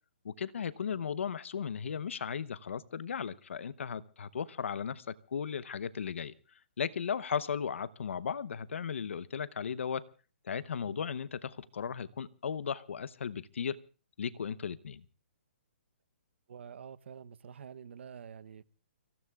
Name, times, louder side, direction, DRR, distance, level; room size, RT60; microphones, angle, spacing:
voice 1, 0.2-6.3 6.8-10.0 10.4-13.8 14.2-15.0, left 7 dB, 75° left, 0.8 m, -36 dB
voice 2, 16.5-18.6, right 7 dB, 65° right, 0.8 m, -47 dB
30.0 x 16.5 x 2.4 m
hypercardioid pair, 150°, 7 cm